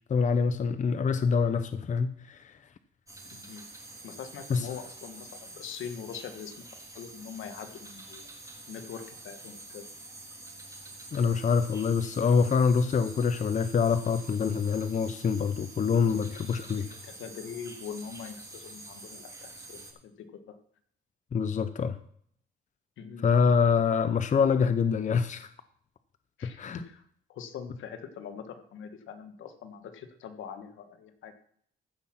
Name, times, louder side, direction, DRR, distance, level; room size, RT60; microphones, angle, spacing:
voice 1, 0.1-2.6 4.5-4.7 11.1-16.9 21.3-22.0 23.2-25.5 26.4-26.8, left 6 dB, 40° left, 0.7 m, -25 dB
sound 1, 3.1-19.9, right 2 dB, 15° right, 3.0 m, -47 dB
voice 2, 3.3-3.6 4.0-6.5 6.9-8.2 8.7-9.9 16.8-20.6 23.0-23.3 26.4-27.0 27.3-31.3, left 7 dB, 80° left, 1.4 m, -43 dB
15.0 x 6.2 x 5.9 m
cardioid pair, 90°, 20 cm